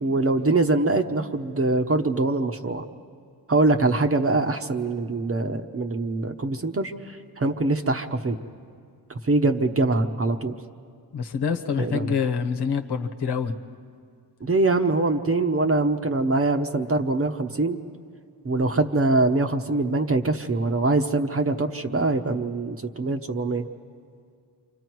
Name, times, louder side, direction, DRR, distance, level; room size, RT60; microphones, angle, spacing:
voice 1, 0.0-2.8 3.5-8.4 9.2-10.6 11.8-12.1 14.4-17.8 18.4-23.6, right 2 dB, 35° right, 5 dB, 1.0 m, -23 dB
voice 2, 11.1-13.5, left 6 dB, 75° left, 5 dB, 1.3 m, -26 dB
28.5 x 25.0 x 4.7 m, 2.2 s
cardioid pair, 80°, 41 cm